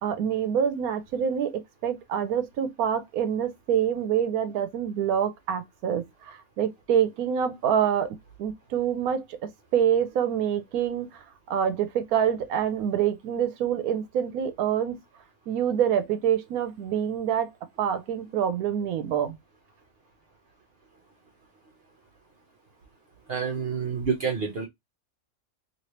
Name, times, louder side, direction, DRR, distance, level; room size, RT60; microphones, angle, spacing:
voice 1, 0.0-15.0 15.5-17.5 17.8-19.4, right 9 dB, 85° right, 1.1 m, -26 dB
voice 2, 23.3-24.7, right 6 dB, 55° right, 0.8 m, -28 dB
3.2 x 2.7 x 2.8 m
omnidirectional pair, 1.5 m